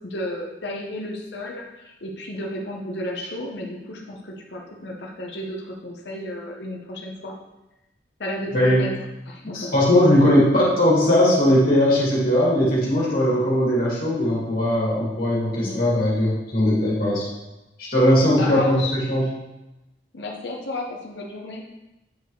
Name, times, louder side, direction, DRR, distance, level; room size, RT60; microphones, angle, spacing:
voice 1, 0.0-7.4 8.2-8.9 9.3-9.7 15.5-15.9 18.4-19.0 20.1-21.7, left 1 dB, 70° left, 0 dB, 0.9 m, -33 dB
voice 2, 9.5-17.2 17.8-19.2, left 1 dB, 50° left, -6 dB, 2.4 m, -19 dB
8.4 x 4.7 x 3.1 m, 1.0 s
head